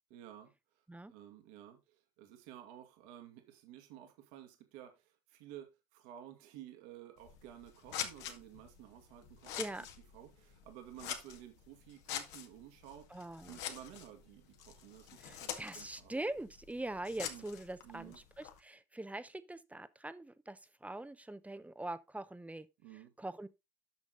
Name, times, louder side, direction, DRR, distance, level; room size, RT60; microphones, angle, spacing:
voice 1, 0.1-0.5 1.1-9.5 10.1-13.1 13.5-16.1 17.3-17.4 17.8-18.2 22.8-23.1, right 11 dB, 65° right, 2.0 m, -53 dB
Scissors, 7.2-18.6, left 9 dB, 60° left, 1.9 m, -46 dB
voice 2, 13.1-13.6 15.2-22.7 23.2-23.5, right 2 dB, 5° right, 0.9 m, -43 dB
9.2 x 6.2 x 3.8 m
hypercardioid pair, 90°, 20 cm